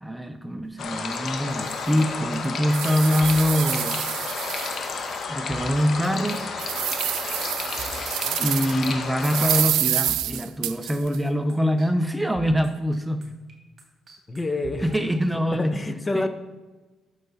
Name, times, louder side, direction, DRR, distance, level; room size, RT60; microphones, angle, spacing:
voice 1, 0.0-4.0 5.3-6.4 8.4-13.3 14.8-15.8 16.1-16.3, equal, 5° right, 8 dB, 0.7 m, -24 dB
sound 1, 0.8-9.6, left 4 dB, 60° left, 1.5 m, -31 dB
sound 2, 1.1-1.2 1.7-1.8 2.3-5.2 5.6-5.7 6.2-8.9 9.2-11.2, right 13 dB, 90° right, 0.3 m, -28 dB
sound 3, 1.5-11.2 11.5-15.5, right 5 dB, 45° right, 2.9 m, -45 dB
voice 2, 14.3-15.0 15.5-16.3, left 2 dB, 25° left, 9 dB, 0.8 m, -28 dB
12.0 x 6.7 x 4.1 m, 1.2 s
cardioid pair, 90°, 0 cm